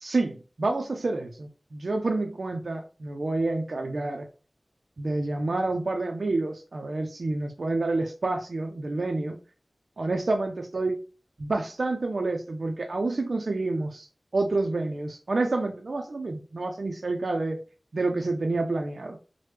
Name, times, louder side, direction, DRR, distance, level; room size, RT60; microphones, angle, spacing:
voice 1, 0.0-4.3 5.0-9.4 10.0-11.0 11.4-14.1 14.3-17.6 17.9-19.2, right 2 dB, 75° right, 3 dB, 0.4 m, -28 dB
3.2 x 2.1 x 2.9 m, 0.35 s
wide cardioid pair, 60°, 0 cm